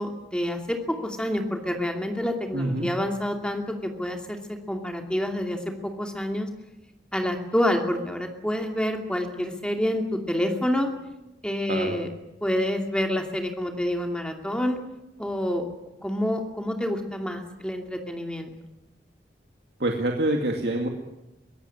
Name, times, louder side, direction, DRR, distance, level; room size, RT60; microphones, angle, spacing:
voice 1, 0.0-6.5 7.1-10.9 11.4-12.1 12.4-14.8 15.2-15.7 16.0-18.5, left 1 dB, 5° left, 3 dB, 2.6 m, -28 dB
voice 2, 2.5-2.9 11.7-11.9 19.8-20.9, right 1 dB, 70° right, 1 dB, 2.3 m, -26 dB
23.0 x 17.0 x 9.9 m, 0.95 s
head